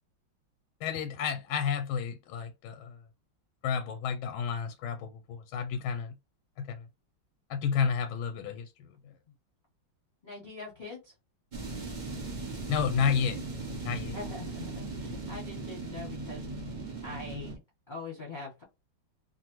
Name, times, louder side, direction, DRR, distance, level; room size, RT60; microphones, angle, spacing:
voice 1, 0.8-3.0 3.6-6.1 6.6-6.8 7.5-8.9 12.7-13.4 13.8-14.2, left 7 dB, 90° left, 1.4 m, -31 dB
voice 2, 10.2-11.1 14.1-17.5 17.9-18.6, left 3 dB, 35° left, 0.8 m, -43 dB
sound 1, 11.5-17.6, right 3 dB, 80° right, 0.4 m, -38 dB
3.1 x 2.4 x 3.0 m
omnidirectional pair, 2.2 m